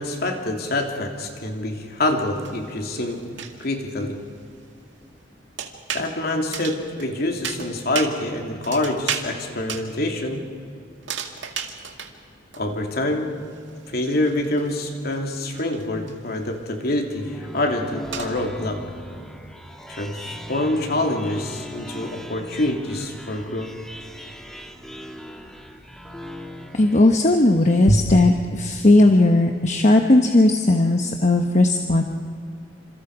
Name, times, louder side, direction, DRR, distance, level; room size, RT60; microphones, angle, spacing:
voice 1, 0.0-3.3 3.6-4.2 5.9-10.5 12.6-13.3 13.9-18.8 19.9-23.7 27.9-28.0, left 1 dB, 55° left, 2 dB, 3.1 m, -26 dB
sound 1, 1.2-1.3 2.0-3.7 5.6-6.1 6.5-7.1 7.4-8.1 8.6-9.3 9.7-9.9 11.0-12.1 12.5-12.6 12.9-13.0 13.5-16.5 16.9-17.0 17.7-17.8 18.1-18.3, right 7 dB, 80° right, 2.1 m, -33 dB
sound 2, 17.2-27.8, equal, 5° left, 1.6 m, -39 dB
voice 2, 26.7-32.0, left 2 dB, 40° left, 4 dB, 1.1 m, -17 dB
28.0 x 27.0 x 5.0 m, 2.4 s
head